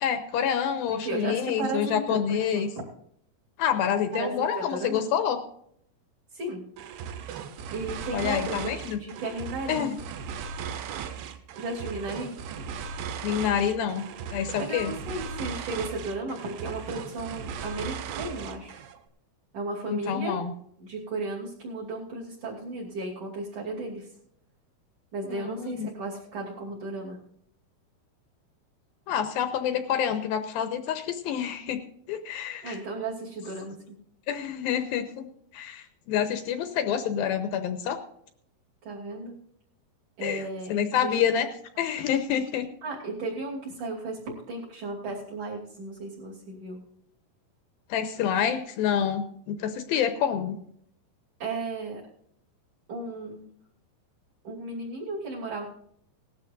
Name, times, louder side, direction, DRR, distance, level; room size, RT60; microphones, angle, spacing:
voice 1, 0.0-2.7 3.6-5.4 8.1-9.0 9.7-10.0 13.2-14.9 19.9-20.5 25.2-25.9 29.1-31.8 32.1-32.8 34.3-35.3 35.5-38.0 40.2-41.5 41.8-42.7 47.9-50.6, left 8 dB, 75° left, 8 dB, 2.4 m, -27 dB
voice 2, 1.0-2.8 4.1-5.0 6.3-6.6 7.7-9.8 11.6-12.3 14.6-18.9 19.5-20.4 20.8-24.1 25.1-27.2 32.6-34.0 38.9-39.3 40.2-41.4 42.8-46.8 51.4-52.0 52.9-53.4 54.4-55.7, right 2 dB, 50° right, -1 dB, 3.9 m, -35 dB
sound 1, 6.8-19.0, right 7 dB, 80° right, 2.8 m, -37 dB
18.5 x 13.0 x 2.6 m, 0.68 s
omnidirectional pair, 4.8 m